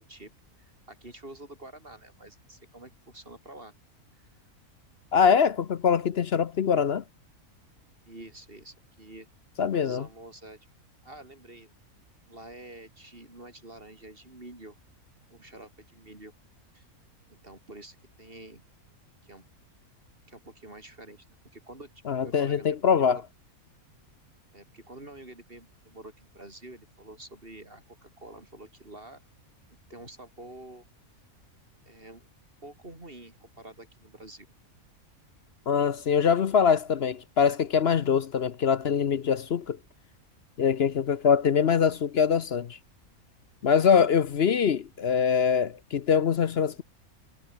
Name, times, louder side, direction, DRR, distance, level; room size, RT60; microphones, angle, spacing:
voice 1, 0.6-3.7 4.2-4.3 8.1-9.3 9.7-10.6 11.0-11.7 12.3-14.7 15.3-16.3 16.7-16.9 17.3-18.6 19.2-19.4 20.3-21.2 21.5-23.2 24.5-29.2 29.9-30.8 31.8-32.3 32.6-34.5, right 2 dB, 40° right, 5.2 m, -47 dB
voice 2, 5.1-7.0 9.6-10.1 22.1-23.2 35.7-39.8 40.6-42.8 43.6-46.8, left 7 dB, 50° left, 0.9 m, -23 dB
omnidirectional pair, 1.6 m